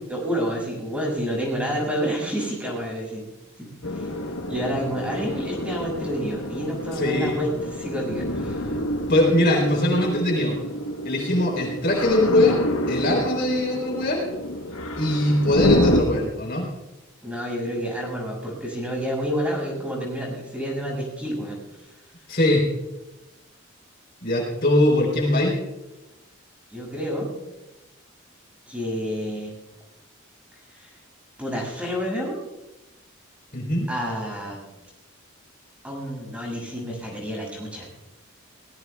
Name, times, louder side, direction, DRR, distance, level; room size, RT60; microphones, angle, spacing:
voice 1, 0.1-3.2 3.6-4.2 4.5-8.8 17.2-21.6 26.7-27.3 28.7-29.5 30.7-30.9 31.4-32.4 33.9-34.6 35.8-37.9, equal, 5° right, -2 dB, 6.7 m, -29 dB
sound 1, 3.8-16.0, left 1 dB, 85° left, 1.2 m, -28 dB
voice 2, 6.9-7.4 9.1-10.6 11.0-14.2 15.0-16.7 22.3-22.6 24.2-25.5 33.5-33.9, left 1 dB, 50° left, -1 dB, 4.0 m, -21 dB
23.5 x 19.0 x 2.4 m, 1.0 s
head